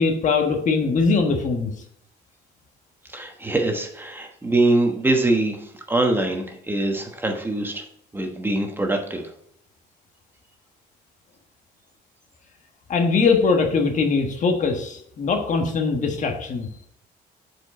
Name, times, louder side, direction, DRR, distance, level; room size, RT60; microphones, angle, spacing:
voice 1, 0.0-1.7 12.9-16.7, left 4 dB, 45° left, 4 dB, 1.4 m, -21 dB
voice 2, 3.1-7.8 8.1-9.2, right 2 dB, 10° right, 3 dB, 1.2 m, -23 dB
7.4 x 5.0 x 4.2 m, 0.69 s
cardioid pair, 110°, 17 cm